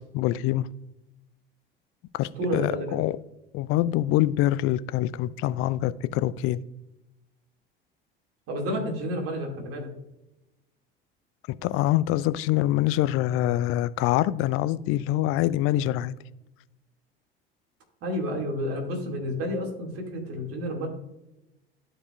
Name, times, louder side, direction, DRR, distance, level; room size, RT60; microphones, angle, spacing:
voice 1, 0.1-0.7 2.1-3.2 3.5-6.6 11.6-16.1, left 14 dB, 50° left, 0.4 m, -25 dB
voice 2, 2.4-3.0 8.5-9.9 18.0-20.9, equal, 50° right, 2.3 m, -30 dB
13.5 x 4.9 x 2.4 m
hypercardioid pair, 65°, 29 cm